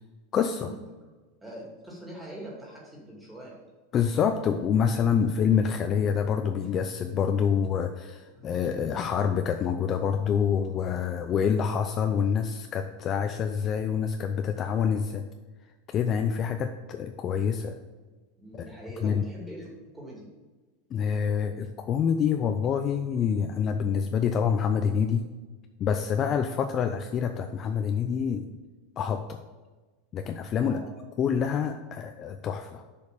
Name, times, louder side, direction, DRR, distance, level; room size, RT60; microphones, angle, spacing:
voice 1, 0.3-0.7 3.9-15.2 15.9-17.8 18.5-18.7 19.0-19.2 20.9-25.3 25.8-28.5 29.0-29.4 30.1-30.8 31.2-32.8, left 7 dB, 30° left, 6 dB, 0.4 m, -26 dB
voice 2, 1.4-3.6 5.2-5.3 8.4-8.5 18.4-20.3 30.6-30.9, right 1 dB, 10° right, -3 dB, 2.3 m, -43 dB
6.7 x 5.1 x 6.7 m, 1.3 s
supercardioid pair, 155°, 0 cm